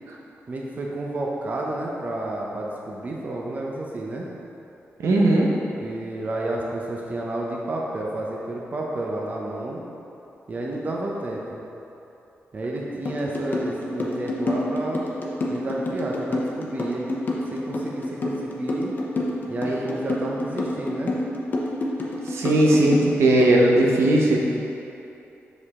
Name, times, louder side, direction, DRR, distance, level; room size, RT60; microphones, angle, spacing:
voice 1, 0.5-4.3 5.8-9.8 10.5-11.6 12.5-15.0 15.5-17.2 17.5-18.9 19.5-21.1, right 2 dB, 35° right, -2 dB, 0.7 m, -30 dB
voice 2, 5.0-5.5 22.3-24.4, right 1 dB, 80° right, -2 dB, 0.9 m, -18 dB
sound 1, 13.0-23.6, left 2 dB, 45° left, 0.8 m, -27 dB
6.4 x 5.2 x 3.6 m, 2.9 s
wide cardioid pair, 135°, 5 cm